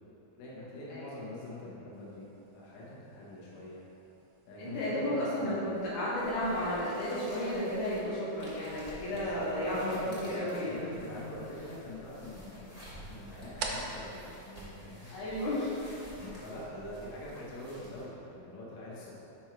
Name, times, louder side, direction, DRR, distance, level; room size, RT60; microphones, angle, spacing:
voice 1, 0.4-3.8 4.4-5.6 9.0-10.3 10.6-15.2 16.1-19.1, left 1 dB, 65° left, -7 dB, 2.7 m, -45 dB
sound 1, 1.9-15.5, right 4 dB, 85° right, 2.3 m, -49 dB
voice 2, 4.6-10.8 15.1-15.7, left 1 dB, 80° left, -8 dB, 2.6 m, -33 dB
sound 2, 5.7-18.0, equal, 25° left, 0.8 m, -51 dB
6.3 x 5.4 x 4.6 m, 2.9 s
omnidirectional pair, 3.5 m